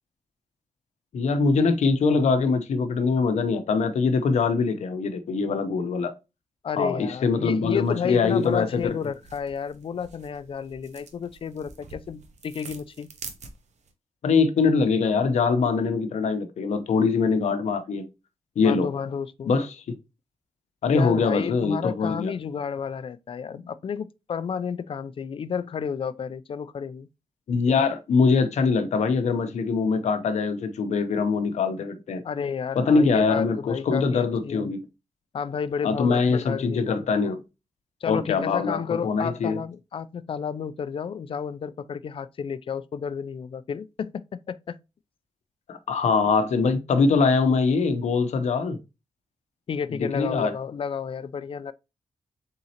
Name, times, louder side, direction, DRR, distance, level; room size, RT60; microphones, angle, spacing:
voice 1, 1.1-6.1 6.8-8.9 14.2-18.1 18.6-18.9 19.5-19.9 20.8-22.3 27.5-32.2 32.8-34.8 35.8-37.4 38.1-39.6 45.7-48.8 50.1-50.5, left 4 dB, 80° left, 0.7 m, -23 dB
voice 2, 6.6-13.1 18.6-19.5 20.9-27.1 32.2-34.7 35.3-37.1 38.0-44.8 49.7-51.7, left 7 dB, 50° left, 0.4 m, -31 dB
sound 1, 7.8-13.9, right 5 dB, 80° right, 0.8 m, -47 dB
4.1 x 3.7 x 2.8 m
cardioid pair, 85°, 12 cm